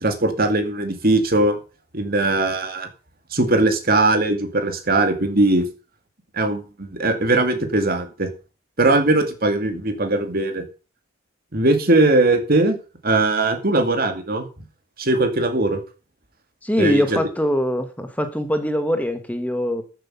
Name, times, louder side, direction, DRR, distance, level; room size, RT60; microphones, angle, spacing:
voice 1, 0.0-1.6 1.9-2.9 3.3-5.7 6.3-8.3 8.8-10.6 11.5-12.8 13.0-14.5 15.0-15.8 16.8-17.2, right 2 dB, 45° right, 7 dB, 2.3 m, -20 dB
voice 2, 16.6-19.8, equal, 5° left, 7 dB, 1.2 m, -22 dB
13.0 x 7.8 x 5.7 m, 0.34 s
head